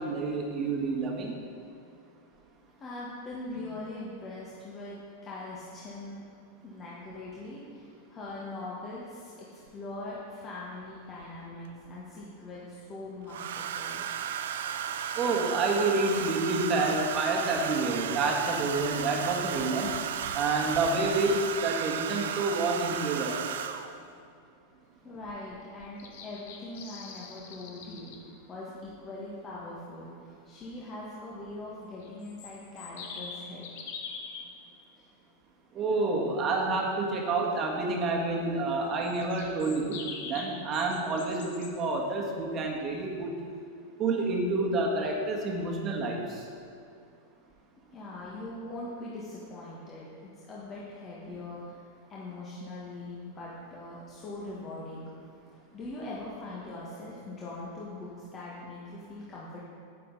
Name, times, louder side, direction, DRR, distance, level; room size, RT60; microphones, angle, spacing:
voice 1, 0.0-1.3 15.1-19.9 20.3-23.4 35.7-43.3 44.0-46.4, right 3 dB, 30° right, 0 dB, 1.6 m, -28 dB
voice 2, 2.8-6.3 6.6-14.1 25.0-33.7 34.9-35.0 47.9-55.1 55.7-59.6, left 2 dB, 25° left, -6 dB, 1.6 m, -41 dB
Domestic sounds home sounds, 9.7-9.8 11.2-11.9 13.3-24.1 25.3-25.5 25.8-26.2, right 8 dB, 60° right, 0.5 m, -34 dB
sound 1, 25.8-28.2 32.0-34.4 39.0-41.7, left 5 dB, 55° left, 1.1 m, -43 dB
10.5 x 8.6 x 4.1 m, 2.5 s
figure-of-eight pair, 90°, 0 cm